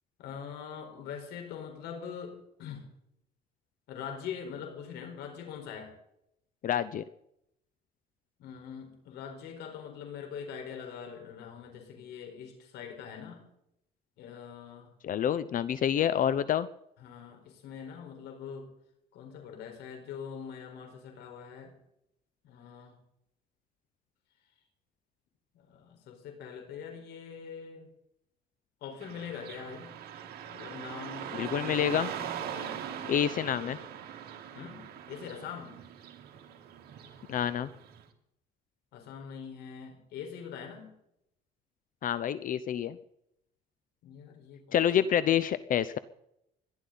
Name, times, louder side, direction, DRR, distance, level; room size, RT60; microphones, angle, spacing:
voice 1, 0.2-2.9 3.9-5.9 8.4-13.4 14.2-14.9 17.0-18.7 19.1-21.7 22.4-23.0 25.5-27.9 28.8-29.9 30.5-32.8 33.5-33.7 34.5-35.8 38.9-40.9 44.0-45.4, left 7 dB, 80° left, 4 dB, 4.7 m, -43 dB
voice 2, 6.6-7.0 15.0-16.7 31.3-32.1 33.1-33.8 37.3-37.7 42.0-43.0 44.7-46.0, left 9 dB, 55° left, 15 dB, 0.8 m, -28 dB
Car passing by / Traffic noise roadway noise, 29.0-38.0, right 9 dB, 70° right, 2.9 m, -41 dB
30.0 x 12.0 x 4.1 m, 0.79 s
cardioid pair, 110°, 17 cm